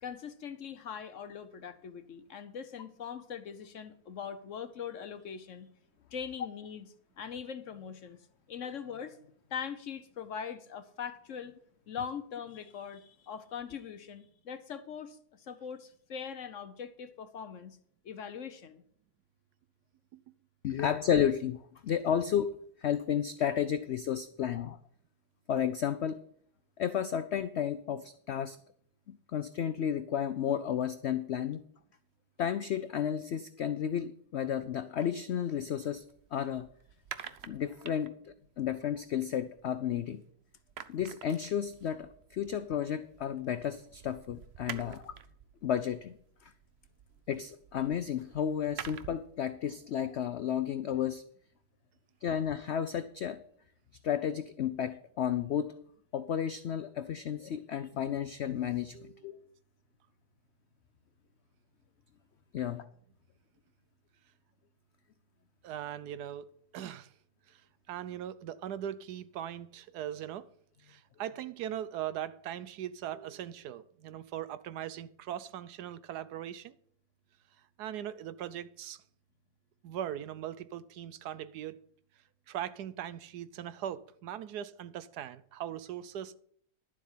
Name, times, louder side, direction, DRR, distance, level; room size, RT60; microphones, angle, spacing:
voice 1, 0.0-5.7 6.1-6.9 7.2-8.2 8.5-9.2 9.5-11.5 11.9-17.8 18.0-18.8, left 7 dB, 55° left, 1.0 m, -41 dB
voice 2, 20.6-24.8 25.5-26.2 26.8-28.6 29.1-31.6 32.4-36.0 36.3-36.7 37.4-40.2 40.9-45.1 45.6-46.2 46.4-46.5 47.3-51.2 52.2-53.4 54.0-55.7 56.1-59.4 62.5-62.9, left 9 dB, 75° left, 0.6 m, -32 dB
sound 1, 35.6-40.2 40.5-49.4, right 9 dB, 60° right, 0.7 m, -49 dB
voice 3, 44.7-45.1 58.9-59.4 65.6-66.4 66.7-67.1 67.5-67.6 67.9-70.4 70.8-76.7 77.8-79.0 79.8-81.8 82.5-86.4, right 11 dB, 80° right, 1.2 m, -40 dB
11.5 x 7.5 x 5.6 m
omnidirectional pair, 1.7 m